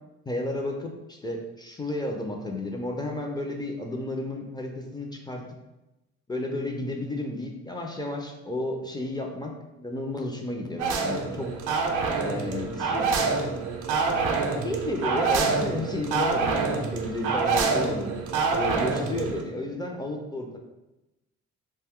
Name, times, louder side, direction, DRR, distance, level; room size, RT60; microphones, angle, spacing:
voice 1, 0.3-5.4 6.3-11.5 12.2-13.3 14.6-18.1 18.5-20.6, left 1 dB, 15° left, 1 dB, 0.4 m, -32 dB
sound 1, 10.8-19.4, right 4 dB, 90° right, 0.5 m, -26 dB
2.5 x 2.2 x 3.5 m, 0.97 s
cardioid pair, 90°, 30 cm